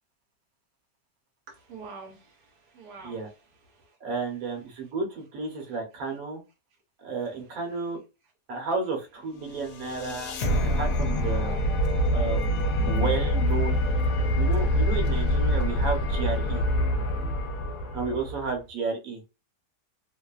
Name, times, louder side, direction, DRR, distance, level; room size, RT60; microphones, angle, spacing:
voice 1, 1.5-3.2 3.7-4.0, right 4 dB, 80° right, 1.2 m, -46 dB
voice 2, 4.0-6.4 7.0-8.0 8.5-10.3 10.8-11.6 12.1-12.6 12.8-13.8 14.3-16.6 17.9-19.2, right 4 dB, 65° right, 1.1 m, -32 dB
sound 1, 9.4-18.5, equal, 75° left, 1.1 m, -25 dB
2.9 x 2.1 x 2.3 m
omnidirectional pair, 1.8 m